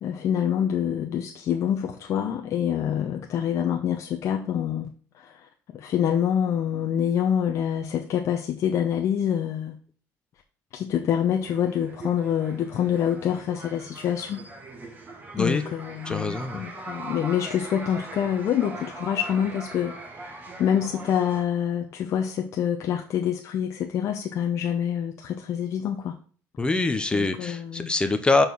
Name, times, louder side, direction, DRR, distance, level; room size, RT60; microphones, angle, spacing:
voice 1, 0.0-4.9 5.1-9.8 10.7-14.5 15.4-26.2 27.1-27.9, left 9 dB, 50° left, 2 dB, 0.7 m, -26 dB
sound 1, 11.4-21.4, right 3 dB, 30° right, 1.7 m, -41 dB
voice 2, 16.1-16.6 26.6-28.5, left 3 dB, 15° left, 8 dB, 0.7 m, -24 dB
6.5 x 4.4 x 5.3 m, 0.44 s
cardioid pair, 130°, 6 cm